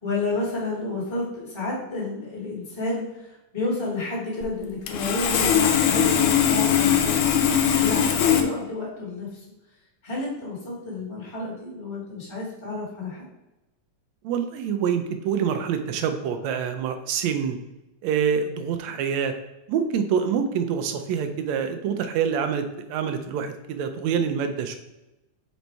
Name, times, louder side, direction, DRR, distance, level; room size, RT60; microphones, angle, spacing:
voice 1, 0.0-9.4 10.0-13.2, left 2 dB, 15° left, -4 dB, 1.3 m, -31 dB
Sawing, 4.4-4.5 4.9-8.4, left 9 dB, 85° left, 2.2 m, -20 dB
voice 2, 14.2-17.6 18.0-19.3 19.7-24.8, right 7 dB, 80° right, 7 dB, 1.7 m, -26 dB
5.2 x 4.1 x 4.5 m, 0.97 s
omnidirectional pair, 3.3 m